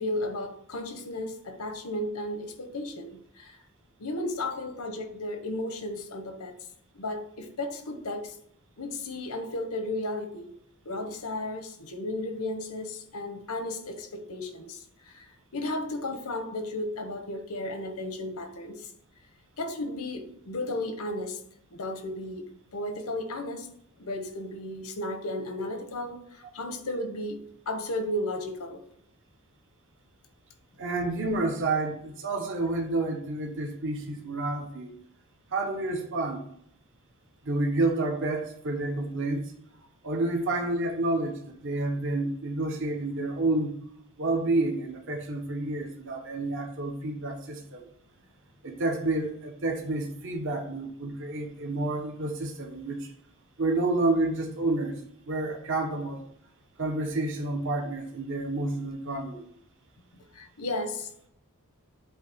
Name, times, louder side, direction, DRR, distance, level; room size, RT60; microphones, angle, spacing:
voice 1, 0.0-3.6 4.0-6.5 6.9-8.4 8.8-10.5 10.8-15.3 15.5-18.9 19.6-21.4 21.7-22.4 22.7-23.7 24.0-27.4 27.7-28.8 60.3-61.3, left 1 dB, 90° left, 1.1 m, -34 dB
voice 2, 30.8-34.9 35.5-36.5 37.4-39.5 40.0-43.7 44.2-47.9 48.6-53.1 53.6-55.0 55.3-56.2 56.8-59.4, right 2 dB, 60° right, 1.1 m, -29 dB
8.1 x 2.9 x 6.1 m
head